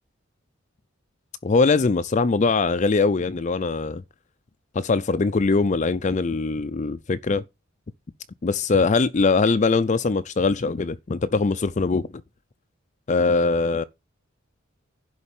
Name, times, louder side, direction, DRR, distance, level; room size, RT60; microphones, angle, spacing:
voice 1, 1.4-4.0 4.7-7.4 8.4-12.1 13.1-13.8, left 4 dB, 35° left, 0.5 m, -22 dB
11.0 x 4.1 x 7.2 m
head